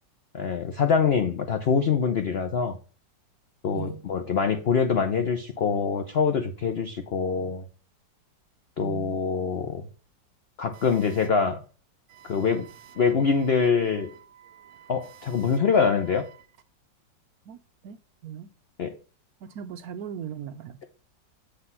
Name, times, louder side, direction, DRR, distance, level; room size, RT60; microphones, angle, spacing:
voice 1, 0.3-2.8 3.6-7.6 8.8-9.9 10.6-11.6 12.2-12.7 13.0-14.1 14.9-16.2 18.8-19.0, left 6 dB, 90° left, 0.5 m, -24 dB
voice 2, 8.8-9.2 10.7-10.9 12.1-12.5 12.8-12.9 14.1-15.6 17.5-17.6 17.8-18.0 18.2-18.5 19.4-20.8, right 9 dB, 70° right, 0.9 m, -40 dB
8.1 x 3.4 x 5.4 m
omnidirectional pair, 2.0 m